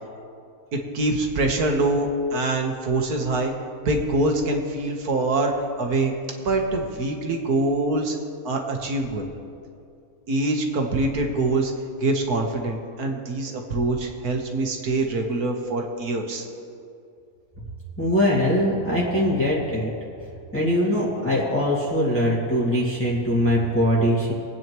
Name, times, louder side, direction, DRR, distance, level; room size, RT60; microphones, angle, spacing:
voice 1, 0.7-3.5 3.8-6.1 6.4-8.2 8.5-9.3 10.3-11.7 12.0-16.5, right 2 dB, 90° right, 2 dB, 1.8 m, -24 dB
voice 2, 18.0-19.9 20.5-24.3, equal, 10° left, -6 dB, 2.0 m, -22 dB
24.0 x 8.9 x 3.1 m, 2.5 s
omnidirectional pair, 1.6 m